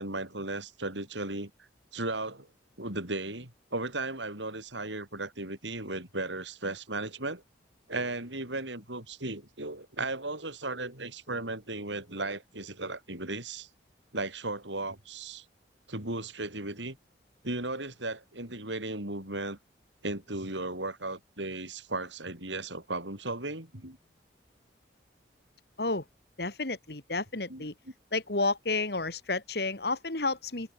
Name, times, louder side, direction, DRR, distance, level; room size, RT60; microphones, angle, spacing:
voice 1, 0.0-1.5 1.9-2.5 2.8-7.4 7.9-13.7 14.1-15.5 15.9-17.0 17.4-19.6 20.0-24.0 27.5-27.7, right 2 dB, 85° right, 7.4 m, -36 dB
voice 2, 26.4-27.7 28.1-30.7, left 3 dB, 60° left, 2.3 m, -31 dB
head